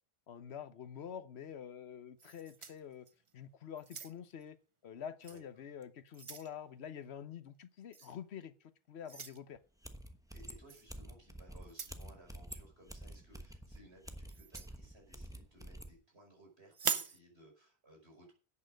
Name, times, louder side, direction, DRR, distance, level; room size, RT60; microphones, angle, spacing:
voice 1, 0.3-3.1 3.3-4.6 4.8-9.6, left 8 dB, 90° left, 1.1 m, -47 dB
sound 1, 2.2-3.3 3.8-4.4 5.2-5.4 5.8-6.5 7.9-8.1 9.0-9.4 10.7-10.9 11.6-12.0 14.3-14.7 16.7-17.2, right 6 dB, 35° right, 0.7 m, -41 dB
sound 2, 9.8-15.9, equal, 5° right, 1.1 m, -49 dB
voice 2, 10.3-18.3, right 1 dB, 85° right, 5.4 m, -61 dB
11.0 x 8.7 x 6.4 m
omnidirectional pair, 1.1 m